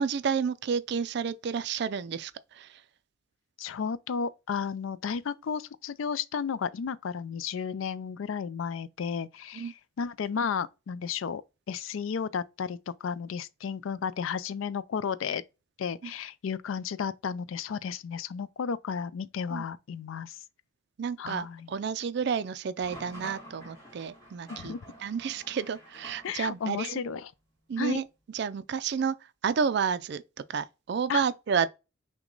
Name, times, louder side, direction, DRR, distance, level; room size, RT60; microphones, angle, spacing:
voice 1, 0.0-2.8 9.5-9.7 16.0-16.1 19.5-19.7 21.0-24.8 25.0-27.0 27.7-28.1 28.3-30.2 30.5-31.7, right 6 dB, 55° right, 0.3 m, -30 dB
voice 2, 3.6-11.4 11.7-15.4 15.8-20.4 21.2-21.7 24.5-24.8 26.2-27.3 27.8-28.0 31.1-31.2, left 6 dB, 75° left, 0.4 m, -33 dB
sound 1, 22.8-26.7, equal, 15° left, 2.4 m, -48 dB
5.9 x 2.2 x 3.8 m
head